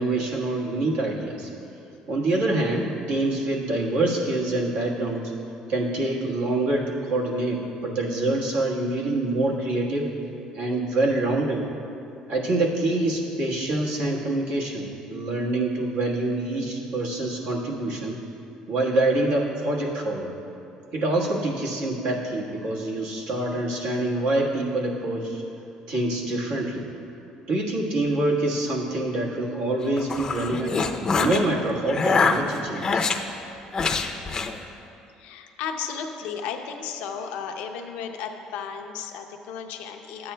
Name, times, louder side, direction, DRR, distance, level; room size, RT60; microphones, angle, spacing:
voice 1, 0.0-1.5 2.1-5.3 5.7-10.1 10.5-11.6 12.3-18.2 18.7-20.3 20.9-25.4 25.9-26.9 27.5-30.8 31.2-33.1, right 2 dB, 75° right, -3 dB, 1.4 m, -26 dB
sound 1, 29.8-31.4 31.9-33.2 33.7-34.5, left 4 dB, 30° left, 0.5 m, -24 dB
voice 2, 35.2-40.3, left 7 dB, 85° left, 4 dB, 0.6 m, -34 dB
12.5 x 8.6 x 2.2 m, 2.7 s
cardioid pair, 105°, 2 cm